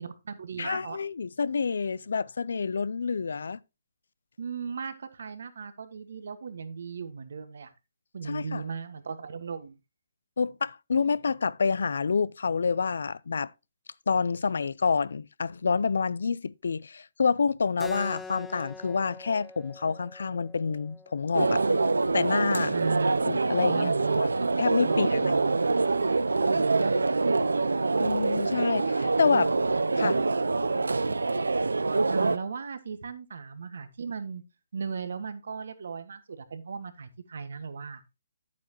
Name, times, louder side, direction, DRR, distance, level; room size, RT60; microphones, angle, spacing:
voice 1, 0.0-1.0 4.4-7.7 8.1-9.7 22.7-23.3 23.7-25.6 26.5-26.9 27.3-27.5 29.3-29.4 30.0-30.1 32.1-34.4 34.7-38.0, right 5 dB, 70° right, 1.6 m, -36 dB
voice 2, 0.6-3.6 8.2-8.6 10.4-13.5 14.1-21.6 22.1-22.8 23.3-23.9 24.2-24.3 24.6-25.3 28.0-29.5 30.0-30.2, left 5 dB, 75° left, 0.5 m, -28 dB
Keyboard (musical), 17.8-22.9, left 3 dB, 10° left, 0.6 m, -46 dB
sound 1, 21.3-32.4, right 3 dB, 90° right, 0.5 m, -25 dB
9.5 x 8.4 x 3.0 m
hypercardioid pair, 145°, 0 cm